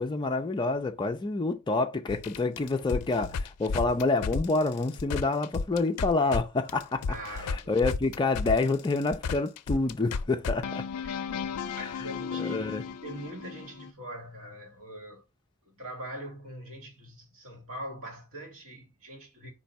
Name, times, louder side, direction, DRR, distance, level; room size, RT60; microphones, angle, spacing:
voice 1, 0.0-7.1 7.5-10.9 11.8-11.9 12.4-12.8, left 3 dB, 20° left, 0.4 m, -28 dB
sound 1, 2.1-6.4 6.7-13.9, left 5 dB, 85° left, 0.4 m, -34 dB
voice 2, 7.1-7.9 11.0-15.2 15.6-19.5, right 1 dB, 65° right, 1.6 m, -43 dB
4.5 x 2.6 x 4.0 m
head